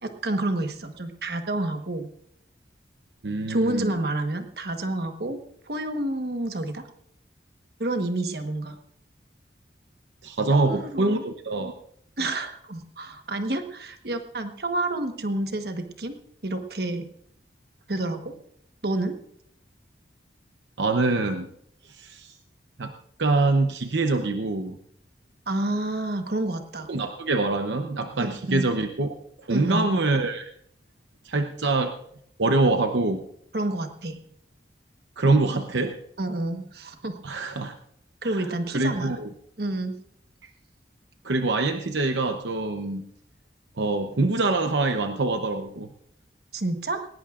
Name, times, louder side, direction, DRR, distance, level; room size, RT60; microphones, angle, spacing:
voice 1, 0.0-2.1 3.5-5.4 5.7-6.8 7.8-8.8 10.5-11.2 12.2-16.2 16.4-17.1 17.9-18.3 18.8-19.2 25.5-26.9 28.2-28.6 29.5-29.9 33.5-34.2 36.2-37.2 38.2-39.2 39.6-39.9 46.5-47.1, right 2 dB, 60° right, 6 dB, 1.3 m, -29 dB
voice 2, 3.2-3.9 10.2-11.7 20.8-21.5 21.9-22.3 22.8-22.9 23.2-24.8 26.9-29.1 29.5-30.5 31.2-31.9 32.4-33.2 35.2-35.9 37.2-37.7 38.2-39.3 41.2-43.0 43.8-45.9, right 3 dB, 85° right, 6 dB, 0.8 m, -24 dB
19.5 x 17.5 x 2.5 m, 0.69 s
head